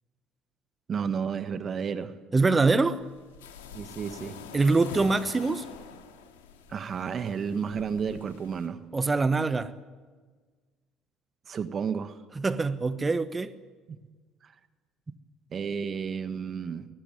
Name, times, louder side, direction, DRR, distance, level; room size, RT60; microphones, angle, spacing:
voice 1, 0.9-2.1 3.7-4.4 6.7-8.8 11.5-12.2 15.5-16.9, right 6 dB, 45° right, 10 dB, 1.6 m, -32 dB
voice 2, 2.3-3.0 4.5-5.6 8.9-9.7 12.3-13.5, right 3 dB, 25° right, 12 dB, 1.2 m, -24 dB
sound 1, 2.9-8.7, left 5 dB, 90° left, 2.6 m, -45 dB
21.0 x 18.5 x 9.4 m, 1.4 s
hypercardioid pair, 60°, 0 cm